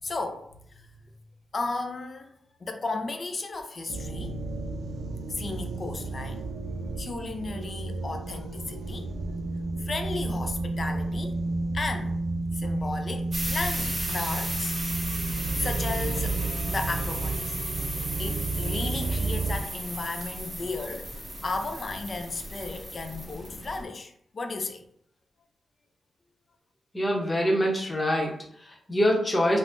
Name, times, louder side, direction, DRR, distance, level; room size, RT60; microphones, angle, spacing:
voice 1, 0.0-1.1 1.5-4.3 5.3-6.5 6.8-9.1 9.8-11.4 11.7-12.2 12.5-14.8 15.6-16.4 16.7-17.6 18.2-21.1 21.4-24.9, left 3 dB, 40° left, 0.4 m, -34 dB
sound 1, 3.9-19.6, right 3 dB, 80° right, 0.4 m, -31 dB
sound 2, 13.3-23.8, right 1 dB, 15° right, 0.8 m, -35 dB
voice 2, 26.9-29.6, equal, 20° left, 0.7 m, -25 dB
2.5 x 2.0 x 3.4 m
cardioid pair, 105°, 0 cm